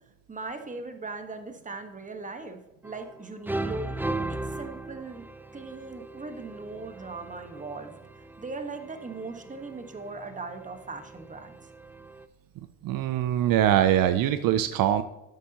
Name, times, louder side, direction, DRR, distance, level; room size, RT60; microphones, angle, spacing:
voice 1, 0.3-3.9 4.3-5.3 5.5-11.6, right 3 dB, 20° right, 7 dB, 1.4 m, -39 dB
sound 1, 2.8-3.2 3.5-12.2, right 2 dB, 5° right, 0.5 m, -38 dB
voice 2, 12.8-15.0, right 11 dB, 65° right, 11 dB, 0.7 m, -23 dB
12.0 x 8.4 x 2.9 m, 1.0 s
cardioid pair, 95°, 36 cm